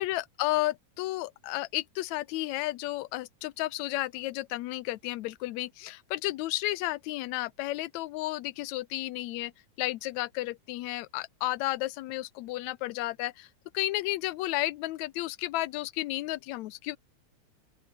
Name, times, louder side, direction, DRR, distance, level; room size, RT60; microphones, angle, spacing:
voice 1, 0.0-9.5 9.8-13.5 13.7-17.0, left 17 dB, 75° left, 2.0 m, -32 dB
open air
omnidirectional pair, 3.5 m